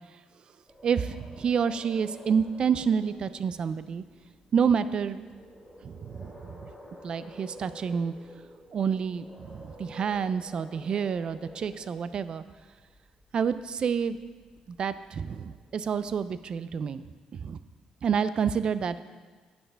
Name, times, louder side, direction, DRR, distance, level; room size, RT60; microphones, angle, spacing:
sound 1, 0.7-17.0, equal, 5° right, 2.6 m, -51 dB
voice 1, 0.8-4.0 4.5-5.3 5.8-6.7 7.0-8.1 8.7-12.4 13.3-14.2 14.7-17.0 17.3-17.6 18.0-19.0, right 7 dB, 45° right, 13 dB, 0.4 m, -28 dB
10.0 x 6.6 x 3.4 m, 1.4 s
cardioid pair, 120°, 2 cm